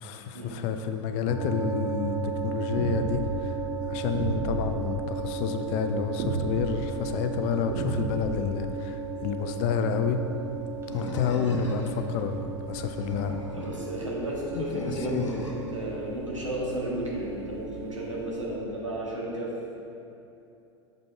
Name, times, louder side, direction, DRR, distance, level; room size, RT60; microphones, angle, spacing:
voice 1, 0.0-3.6 3.9-10.2 10.9-13.4 14.5-15.3, left 6 dB, 40° left, 7 dB, 0.5 m, -29 dB
sound 1, 1.3-18.6, right 4 dB, 15° right, 1.0 m, -35 dB
sound 2, 2.8-3.3 4.1-4.7 6.2-6.7 7.7-8.4, right 4 dB, 40° right, 0.8 m, -31 dB
Animal, 10.9-12.0 12.8-13.9 14.7-15.7, left 2 dB, 80° left, 1.0 m, -37 dB
voice 2, 13.5-19.5, right 1 dB, 85° right, -5 dB, 1.6 m, -33 dB
7.4 x 5.2 x 4.4 m, 2.8 s
figure-of-eight pair, 85°, 16 cm